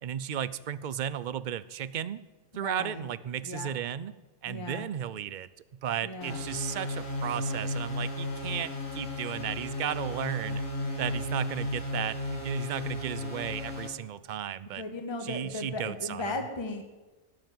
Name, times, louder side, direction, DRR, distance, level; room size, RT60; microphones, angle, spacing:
voice 1, 0.0-2.2 2.5-4.1 4.4-5.5 5.8-10.6 11.0-14.8 15.2-16.4, right 9 dB, 55° right, 17 dB, 0.6 m, -34 dB
voice 2, 2.6-3.0 3.4-3.7 4.5-4.9 6.0-6.4 14.7-16.8, left 2 dB, 20° left, 5 dB, 1.3 m, -36 dB
sound 1, 6.2-13.9, left 2 dB, 50° left, 3.4 m, -34 dB
17.5 x 7.1 x 9.3 m, 1.2 s
omnidirectional pair, 1.4 m